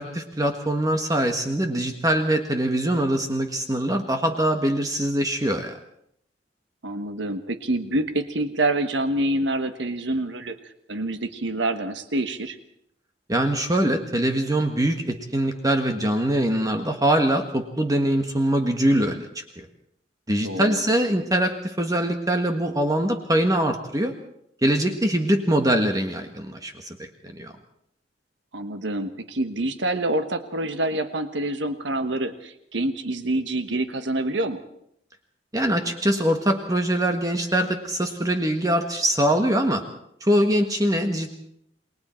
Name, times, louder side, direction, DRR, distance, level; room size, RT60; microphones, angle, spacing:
voice 1, 0.0-5.7 13.3-19.7 20.3-24.1 24.6-27.5 35.5-39.8 40.2-41.4, right 1 dB, 20° right, 5 dB, 1.5 m, -23 dB
voice 2, 6.8-10.6 10.9-12.6 20.4-20.8 28.5-34.6, right 1 dB, 80° right, 9 dB, 1.3 m, -26 dB
28.5 x 21.0 x 4.5 m, 0.72 s
head